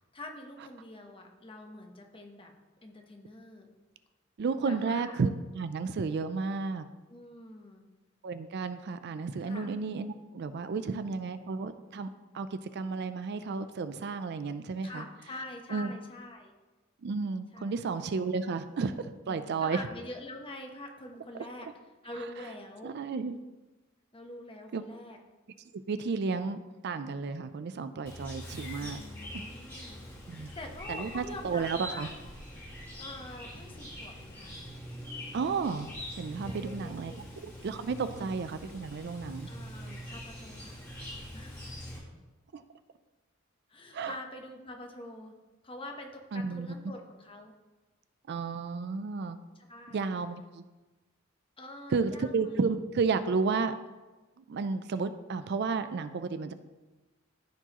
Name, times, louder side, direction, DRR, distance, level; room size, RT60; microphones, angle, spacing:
voice 1, 0.1-2.5 2.8-3.7 4.7-5.1 7.1-7.8 9.4-9.7 10.7-11.3 14.8-16.5 17.5-18.1 19.3-21.7 22.0-22.9 24.1-25.2 28.8-32.1 33.0-34.6 36.4-37.3 38.0-38.3 39.5-40.8 41.3-41.8 43.7-45.3 45.6-47.5 49.5-50.1 51.6-52.7, left 1 dB, 25° left, 3 dB, 1.0 m, -45 dB
voice 2, 4.4-6.8 8.2-12.1 12.3-15.1 15.7-15.9 17.0-19.8 22.8-23.3 24.7-24.8 25.7-29.0 30.3-30.5 30.9-32.1 35.3-35.9 36.2-37.1 37.4-39.5 42.5-42.6 43.9-44.2 46.3-46.7 48.3-49.4 49.9-50.6 51.9-53.8 54.5-56.5, right 4 dB, 55° right, 11 dB, 0.4 m, -32 dB
Chirp tweet, 28.1-42.0, equal, 10° left, 1.8 m, -43 dB
14.0 x 4.7 x 3.0 m, 1.2 s
head